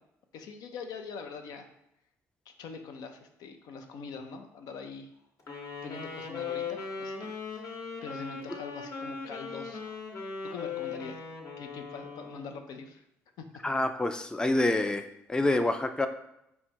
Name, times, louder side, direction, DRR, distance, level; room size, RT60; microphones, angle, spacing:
voice 1, 0.3-1.7 2.5-5.1 5.8-7.3 7.5-7.6 8.0-10.0 10.4-11.2 11.6-13.0 13.4-13.6, left 5 dB, 70° left, 5 dB, 0.5 m, -43 dB
Wind instrument woodwind instrument, 5.4-12.6, left 5 dB, 50° left, 1.0 m, -39 dB
voice 2, 13.6-15.0 15.3-16.1, left 2 dB, 10° left, 7 dB, 0.4 m, -27 dB
4.4 x 2.2 x 4.4 m, 0.83 s
hypercardioid pair, 55°, 7 cm